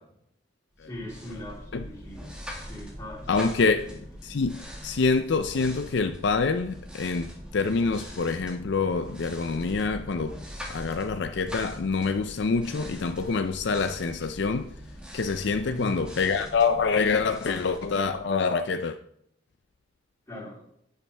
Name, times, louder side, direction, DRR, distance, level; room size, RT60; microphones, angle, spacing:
voice 1, 0.8-2.2 2.6-3.9 15.7-16.0 20.3-20.7, left 1 dB, 15° left, 3.7 m, -40 dB
sound 1, 0.8-18.6, equal, 5° right, 2.0 m, -42 dB
voice 2, 3.3-3.8 4.2-10.4 10.7-14.7 15.1-19.0, left 4 dB, 65° left, 0.5 m, -26 dB
11.0 x 9.2 x 3.4 m
head